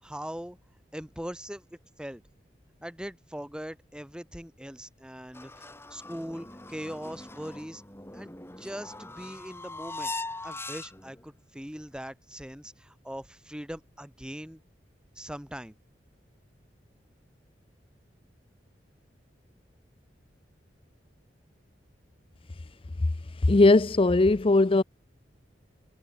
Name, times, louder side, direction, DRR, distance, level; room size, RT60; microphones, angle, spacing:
voice 1, 0.0-0.6 0.9-2.2 2.8-7.8 8.1-10.1 10.4-14.6 15.2-15.8, equal, 5° right, 2.6 m, -41 dB
sound 1, 5.3-11.2, left 2 dB, 15° left, 4.5 m, -41 dB
voice 2, 23.4-24.8, left 2 dB, 30° left, 0.5 m, -19 dB
head